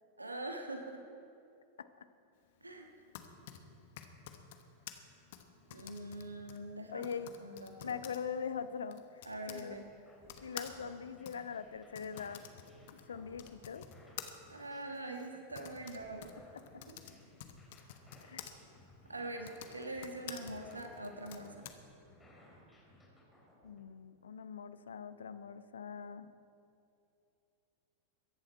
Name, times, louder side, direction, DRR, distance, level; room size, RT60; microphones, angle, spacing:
voice 1, 0.2-1.0 2.6-2.9 5.7-7.1 7.4-8.0 9.2-9.9 14.5-16.4 16.9-17.0 19.1-21.7, right 2 dB, 80° right, 4 dB, 1.3 m, -43 dB
Typing, 2.9-9.7 10.3-18.5 19.3-21.7, left 10 dB, 55° left, 1.1 m, -51 dB
voice 2, 6.9-7.3 7.8-9.8 10.4-12.5 13.1-13.8 18.2-18.5 23.6-26.3, left 6 dB, 70° left, 13 dB, 0.6 m, -42 dB
sound 1, 9.7-23.8, left 1 dB, 10° left, 3.7 m, -61 dB
22.5 x 10.5 x 4.6 m, 2.7 s
figure-of-eight pair, 90°, 0 cm